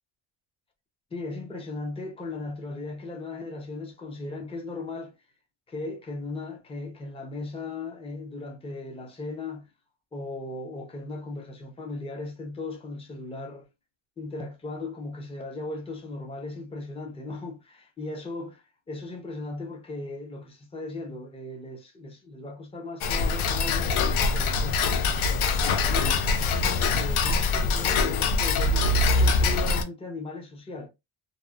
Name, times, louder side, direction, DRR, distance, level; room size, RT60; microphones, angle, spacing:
voice 1, 1.1-5.1 5.7-9.7 10.1-13.7 14.2-18.5 18.9-24.8 25.7-30.9, left 3 dB, 15° left, 0.4 m, -37 dB
Tick-tock, 23.0-29.8, left 3 dB, 75° left, 0.6 m, -23 dB
2.7 x 2.0 x 2.2 m
wide cardioid pair, 150°, 49 cm